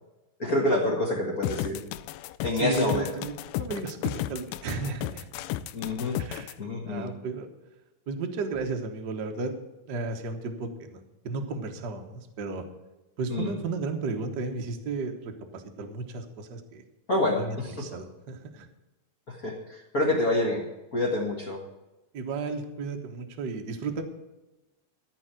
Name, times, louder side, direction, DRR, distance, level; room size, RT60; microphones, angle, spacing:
voice 1, 0.4-1.8 2.4-3.1 5.7-6.2 6.6-7.1 13.3-13.5 17.1-17.9 19.3-20.6 20.9-21.6, left 2 dB, 45° left, -1 dB, 1.1 m, -27 dB
sound 1, 1.4-6.5, left 14 dB, 80° left, 2.1 m, -33 dB
voice 2, 2.5-5.3 6.2-6.5 6.8-7.5 8.1-9.5 9.9-11.0 11.2-12.6 13.2-16.8 17.4-18.7 22.1-24.0, right 4 dB, 80° right, 4 dB, 0.9 m, -34 dB
13.5 x 5.5 x 8.9 m, 1.0 s
omnidirectional pair, 3.8 m